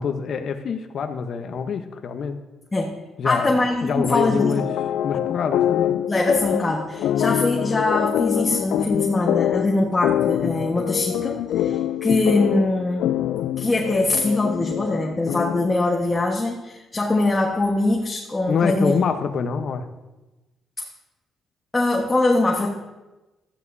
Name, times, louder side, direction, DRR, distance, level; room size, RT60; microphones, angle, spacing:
voice 1, 0.0-2.4 3.2-3.5 3.8-4.6 5.0-6.0 18.5-19.9, left 6 dB, 60° left, 7 dB, 0.9 m, -25 dB
voice 2, 3.2-4.6 6.1-13.1 13.6-19.0 21.7-22.7, left 2 dB, 20° left, -1 dB, 1.3 m, -22 dB
sound 1, 4.0-15.8, left 11 dB, 80° left, 0.3 m, -25 dB
13.5 x 11.0 x 2.7 m, 1.1 s
cardioid pair, 90°, 0 cm